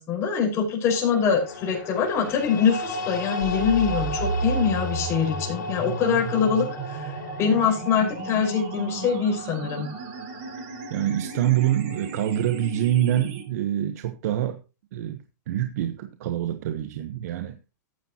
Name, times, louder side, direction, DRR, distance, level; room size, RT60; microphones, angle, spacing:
voice 1, 0.0-7.1 7.4-9.9, left 6 dB, 25° left, 5.2 m, -24 dB
sound 1, 0.9-13.1, left 1 dB, 80° left, 3.4 m, -35 dB
sound 2, 3.4-13.4, right 4 dB, 45° right, 3.9 m, -34 dB
voice 2, 10.9-14.6 14.9-15.2 15.5-17.6, right 12 dB, 60° right, 1.2 m, -25 dB
14.0 x 9.9 x 3.0 m
hypercardioid pair, 150°, 10 cm